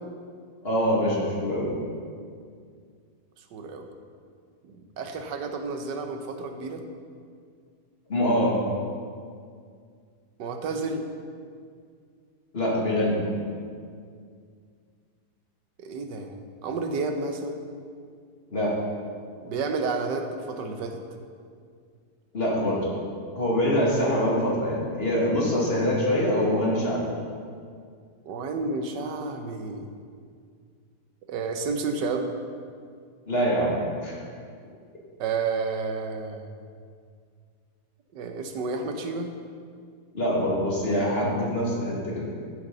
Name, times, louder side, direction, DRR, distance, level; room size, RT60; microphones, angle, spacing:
voice 1, 0.6-1.7 8.1-8.5 12.5-13.2 18.5-18.7 22.3-22.8 23.3-27.0 33.3-34.2 40.1-42.3, equal, 35° left, -5 dB, 2.3 m, -24 dB
voice 2, 3.4-3.9 4.6-6.8 10.4-11.1 15.8-17.6 19.4-21.0 28.2-29.9 31.3-32.3 35.2-36.5 38.1-39.3, right 4 dB, 80° right, 6 dB, 1.5 m, -31 dB
12.0 x 8.1 x 3.9 m, 2.2 s
omnidirectional pair, 1.8 m